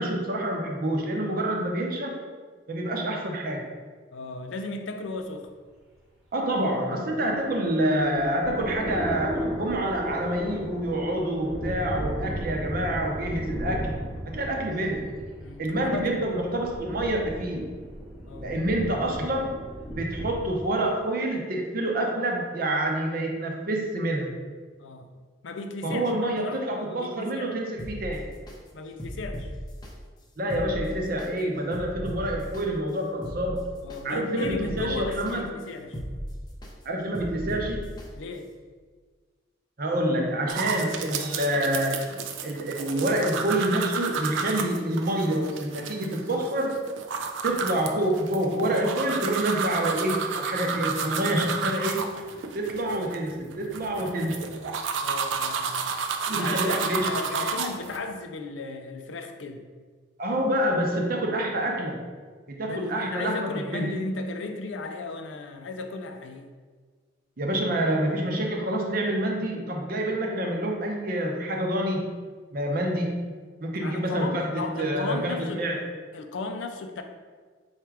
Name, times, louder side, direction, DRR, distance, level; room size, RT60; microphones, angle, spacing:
voice 1, 0.0-2.2 2.7-3.6 6.3-14.0 14.3-15.1 15.6-17.7 18.4-19.5 20.0-24.4 25.8-28.3 30.4-33.7 34.0-35.5 36.8-37.9 39.8-42.0 42.4-46.8 47.4-52.0 52.5-54.4 56.3-57.5 60.2-62.0 62.5-63.9 67.4-72.1 72.5-73.2 73.6-75.8, right 1 dB, 50° right, 1 dB, 0.7 m, -27 dB
voice 2, 4.1-5.5 15.4-16.2 18.3-18.5 24.8-25.1 25.4-27.5 28.7-29.5 33.8-36.0 38.1-38.5 50.6-50.8 51.2-51.5 55.0-55.8 56.3-59.6 62.7-66.5 73.8-75.7 76.1-77.0, left 3 dB, 85° left, 6 dB, 0.4 m, -35 dB
sound 1, 7.4-20.5, equal, ahead, 0.9 m, -35 dB
sound 2, 27.8-28.6 29.0-29.9 30.4-31.3 31.7-32.6 33.1-34.0 34.4-35.3 35.8-36.7 37.1-38.1 38.5-38.6, equal, 20° left, 0.6 m, -36 dB
sound 3, 40.5-58.0, right 5 dB, 85° right, 0.4 m, -31 dB
4.4 x 2.4 x 4.5 m, 1.5 s
head